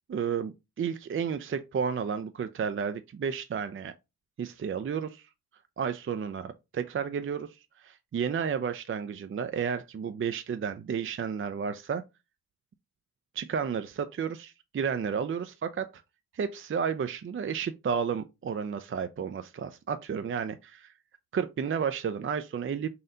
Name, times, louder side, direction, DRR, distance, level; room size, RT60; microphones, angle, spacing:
voice 1, 0.1-3.9 4.4-5.3 5.8-12.0 13.3-16.0 16.3-20.9 21.3-22.9, right 7 dB, 35° right, 0.4 m, -32 dB
4.2 x 2.6 x 3.7 m
cardioid pair, 60°, 35 cm